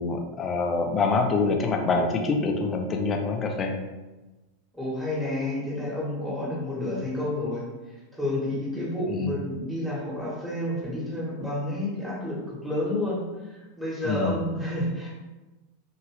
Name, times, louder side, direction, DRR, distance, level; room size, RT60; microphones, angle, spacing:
voice 1, 0.0-3.8 9.1-9.4 14.0-14.4, left 3 dB, 25° left, 3 dB, 0.5 m, -25 dB
voice 2, 4.7-7.6 8.1-13.2 13.5-15.1, left 1 dB, ahead, -7 dB, 1.3 m, -30 dB
2.9 x 2.7 x 3.0 m, 1.1 s
figure-of-eight pair, 85°, 0 cm